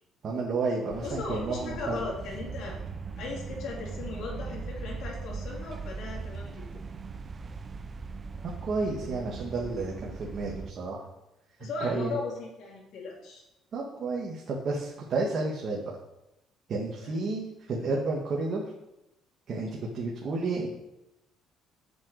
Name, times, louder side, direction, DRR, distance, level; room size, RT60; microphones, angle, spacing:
voice 1, 0.2-2.0 8.6-11.0 11.6-12.2 13.7-15.8 16.7-18.6 19.5-20.7, right 3 dB, 50° right, -3 dB, 2.1 m, -31 dB
sound 1, 0.9-10.7, right 4 dB, 35° right, 0.7 m, -39 dB
voice 2, 1.0-2.8 3.2-6.8 11.6-13.4 17.0-17.3, left 3 dB, 70° left, -2 dB, 3.3 m, -37 dB
8.4 x 6.4 x 8.3 m, 0.91 s
cardioid pair, 95°, 0 cm